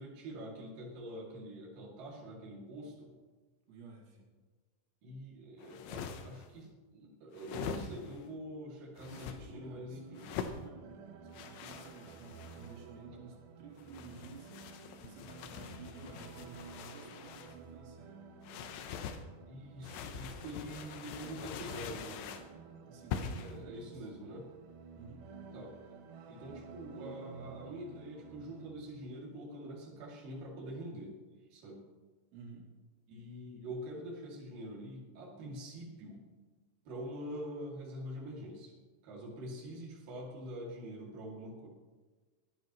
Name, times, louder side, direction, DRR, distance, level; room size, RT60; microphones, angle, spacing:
voice 1, 0.0-3.1 5.0-10.3 19.5-22.4 23.4-24.5 25.5-25.8 26.3-31.2 31.5-31.8 33.1-36.2 36.9-38.7 39.0-41.7, equal, 55° right, -3 dB, 3.9 m, -45 dB
voice 2, 3.7-4.3 9.1-14.5 15.0-18.2 22.9-24.1 24.9-25.3 32.3-32.7, right 4 dB, 90° right, -1 dB, 4.7 m, -53 dB
sound 1, 5.6-6.5 7.3-8.2 9.0-9.4 10.2-10.6 11.3-12.8 13.8-17.6 18.4-19.2 19.8-22.5 23.1-23.6, left 7 dB, 90° left, 3.3 m, -43 dB
sound 2, 9.0-28.7, right 5 dB, 70° right, 1.9 m, -52 dB
21.5 x 10.5 x 3.1 m, 1.3 s
omnidirectional pair, 5.2 m